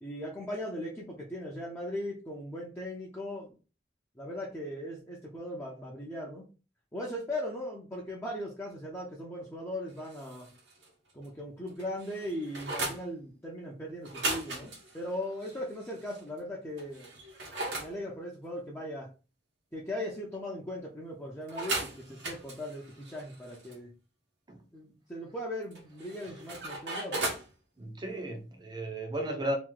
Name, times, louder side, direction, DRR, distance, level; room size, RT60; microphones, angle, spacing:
voice 1, 0.0-3.5 4.2-6.5 6.9-10.5 11.1-17.2 17.8-19.1 19.7-23.9 24.7-27.3, left 1 dB, 15° left, 0.7 m, -38 dB
sound 1, 10.0-10.9 11.2-11.3 11.7-13.0 14.0-16.2 16.8-17.9 21.5-23.7 25.7-27.5, right 2 dB, 85° right, 1.3 m, -37 dB
voice 2, 27.8-29.6, right 1 dB, 25° right, 0.8 m, -34 dB
3.0 x 2.6 x 3.7 m
head